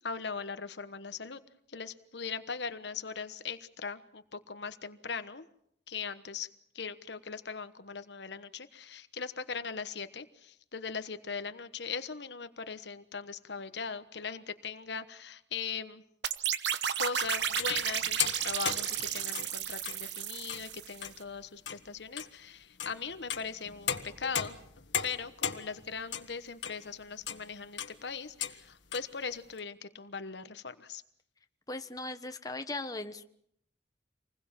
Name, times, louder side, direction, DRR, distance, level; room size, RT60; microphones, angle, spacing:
voice 1, 0.0-1.4 1.7-5.5 5.9-6.5 6.7-16.0 17.0-24.6 25.0-31.0, left 5 dB, 70° left, 11 dB, 1.2 m, -40 dB
sound 1, 16.2-21.0, right 9 dB, 70° right, 1.1 m, -33 dB
sound 2, 17.2-20.0 20.4-20.6 21.0-21.3 21.7-21.9 22.2-22.3 22.8-26.9 27.2-27.5 27.8-28.0 28.4-28.6 28.9-29.1 29.6-29.7, left 8 dB, 90° left, 1.7 m, -37 dB
voice 2, 31.7-33.2, left 2 dB, 20° left, 7 dB, 1.2 m, -38 dB
27.0 x 20.5 x 7.3 m, 0.71 s
head